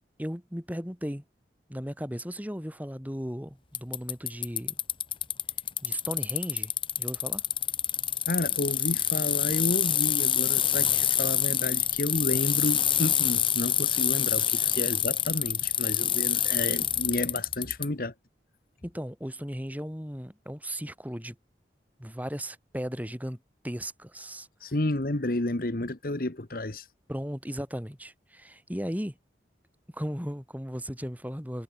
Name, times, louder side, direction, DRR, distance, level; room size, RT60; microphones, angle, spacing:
voice 1, 0.2-1.2 1.7-4.7 5.8-6.7 7.0-7.4 18.8-21.3 22.0-23.4 23.6-24.7 27.1-29.2 29.9-31.6, equal, 10° right, 6.4 m, -36 dB
Bicycle, 3.7-17.9, left 10 dB, 30° left, 1.7 m, -26 dB
voice 2, 8.3-18.1 24.6-26.9, left 1 dB, 55° left, 1.4 m, -31 dB
head